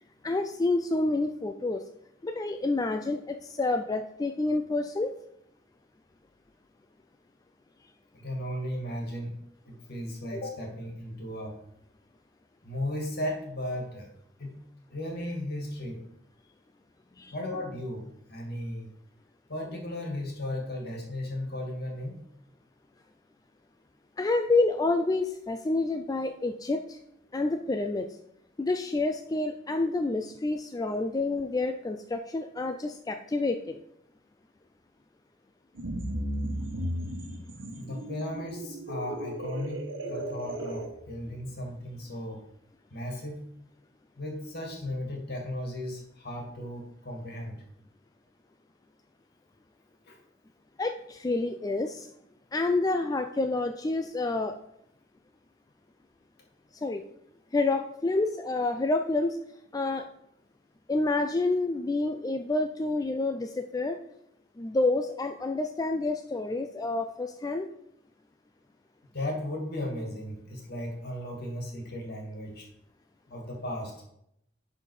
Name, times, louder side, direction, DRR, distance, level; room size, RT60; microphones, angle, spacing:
voice 1, 0.2-1.8 2.2-5.1 17.2-17.3 24.2-27.0 27.3-28.1 28.6-33.8 50.8-52.1 52.5-54.6 56.7-57.0 57.5-59.4 59.7-60.1 60.9-64.0 64.6-67.7, left 2 dB, 20° left, 6 dB, 0.4 m, -28 dB
voice 2, 8.1-9.3 9.7-11.6 12.6-14.1 14.4-14.6 14.9-16.0 17.3-18.9 19.5-22.2 37.3-37.4 37.7-42.4 42.9-43.4 44.2-47.6 50.1-50.2 69.1-72.7 73.3-73.9, left 1 dB, 55° left, 0 dB, 2.3 m, -36 dB
sound 1, 35.8-40.9, right 1 dB, 85° right, 1.2 m, -35 dB
10.5 x 4.2 x 4.9 m, 0.77 s
head